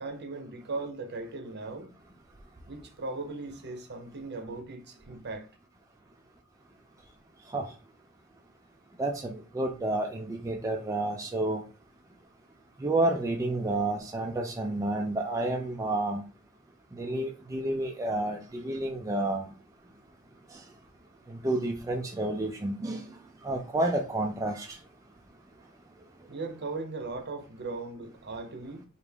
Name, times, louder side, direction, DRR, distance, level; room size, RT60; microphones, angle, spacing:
voice 1, 0.0-1.9 2.7-5.5 26.3-28.8, right 3 dB, 55° right, 0.7 m, -38 dB
voice 2, 9.0-11.6 12.8-16.2 16.9-19.5 20.5-20.6 21.3-23.1 23.4-24.8, right 2 dB, 15° right, 0.3 m, -30 dB
3.4 x 2.4 x 3.4 m
head